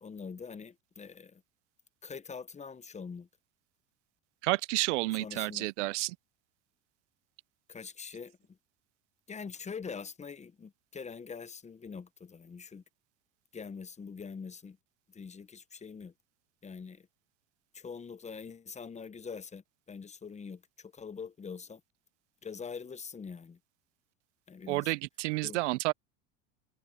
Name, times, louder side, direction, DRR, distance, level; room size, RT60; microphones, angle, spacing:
voice 1, 0.0-1.4 2.0-3.3 5.2-5.7 7.7-8.6 9.3-12.8 13.5-14.8 15.1-16.1 16.6-17.1 17.7-21.8 22.4-23.6 24.5-24.9 25.4-25.6, left 5 dB, 20° left, 1.1 m, -44 dB
voice 2, 4.4-6.2 24.7-25.9, right 21 dB, 80° right, 0.8 m, -30 dB
supercardioid pair, 100°, 35 cm